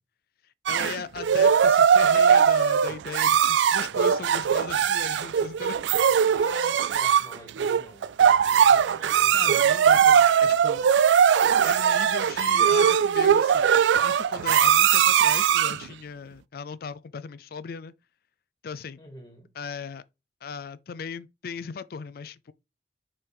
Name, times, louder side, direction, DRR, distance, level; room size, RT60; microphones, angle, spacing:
voice 1, 0.7-5.9 9.3-10.9 11.6-13.7 14.0-17.9 18.6-19.0 19.5-20.0 20.4-22.5, left 6 dB, 55° left, 0.4 m, -38 dB
sound 1, 0.7-15.9, right 8 dB, 85° right, 0.3 m, -20 dB
voice 2, 6.3-8.1 8.4-9.7 19.0-19.5, left 1 dB, 15° left, 1.6 m, -46 dB
5.5 x 5.4 x 3.4 m
head